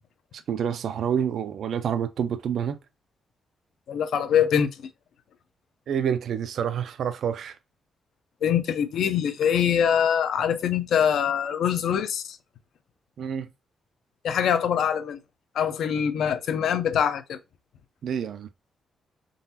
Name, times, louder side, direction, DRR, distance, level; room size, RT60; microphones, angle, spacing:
voice 1, 0.3-2.8 5.9-7.6 13.2-13.5 18.0-18.5, right 8 dB, 55° right, 0.4 m, -28 dB
voice 2, 3.9-4.7 8.4-12.4 14.2-15.2 15.5-17.4, left 8 dB, 70° left, 0.6 m, -23 dB
3.9 x 3.9 x 2.8 m
wide cardioid pair, 175°, 0 cm